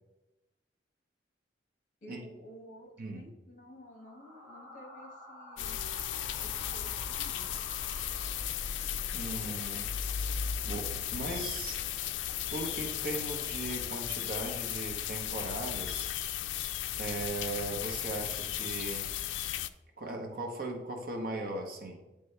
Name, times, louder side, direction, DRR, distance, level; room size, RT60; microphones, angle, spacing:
voice 1, 2.0-5.8 6.4-7.5, equal, 45° left, 1 dB, 1.5 m, -52 dB
sound 1, 3.8-8.9, equal, 25° right, 1.5 m, -50 dB
sound 2, 5.6-19.7, left 10 dB, 85° left, 0.3 m, -35 dB
sound 3, 6.1-13.8, right 1 dB, ahead, 1.6 m, -56 dB
voice 2, 9.1-9.9 10.6-11.8 12.5-16.1 17.0-19.1 20.0-22.0, right 2 dB, 50° right, 2 dB, 1.0 m, -38 dB
9.3 x 3.4 x 3.3 m, 0.97 s
head